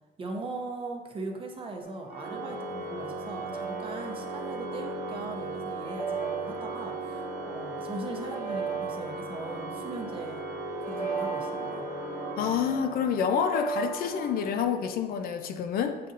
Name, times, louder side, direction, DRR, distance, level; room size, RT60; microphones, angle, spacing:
voice 1, 0.2-10.4 10.8-11.8, right 3 dB, 30° right, 1 dB, 0.7 m, -39 dB
sound 1, 1.8-14.6, right 5 dB, 45° left, 0.8 m, -39 dB
Organ, 2.1-13.0, right 2 dB, 75° right, 1.0 m, -37 dB
voice 2, 12.4-16.0, left 7 dB, 60° left, 8 dB, 0.4 m, -28 dB
7.4 x 2.7 x 2.5 m, 1.2 s
cardioid pair, 110°, 17 cm